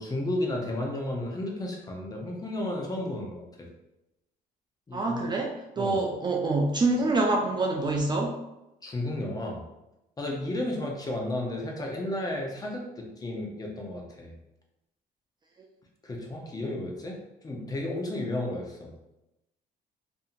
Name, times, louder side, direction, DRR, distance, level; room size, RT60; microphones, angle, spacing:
voice 1, 0.0-3.7 4.9-5.2 5.8-6.1 8.8-9.6 10.2-14.3 16.0-17.2 17.4-18.9, left 1 dB, 20° left, 0 dB, 0.6 m, -33 dB
voice 2, 4.9-8.4, right 2 dB, 25° right, 0 dB, 0.4 m, -26 dB
2.7 x 2.6 x 2.4 m, 0.94 s
cardioid pair, 110°, 17 cm